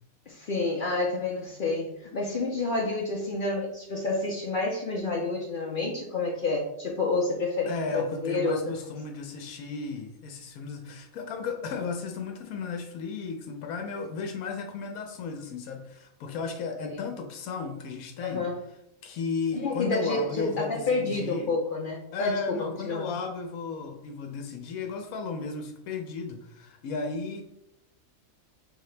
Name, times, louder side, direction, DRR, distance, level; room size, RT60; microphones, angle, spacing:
voice 1, 0.3-8.8 16.8-17.0 18.2-18.6 19.5-23.1, left 3 dB, 50° left, -1 dB, 0.6 m, -29 dB
voice 2, 7.6-18.4 19.0-21.5 22.1-27.4, left 4 dB, 85° left, 4 dB, 1.1 m, -34 dB
5.2 x 2.8 x 3.2 m, 0.79 s
omnidirectional pair, 1.5 m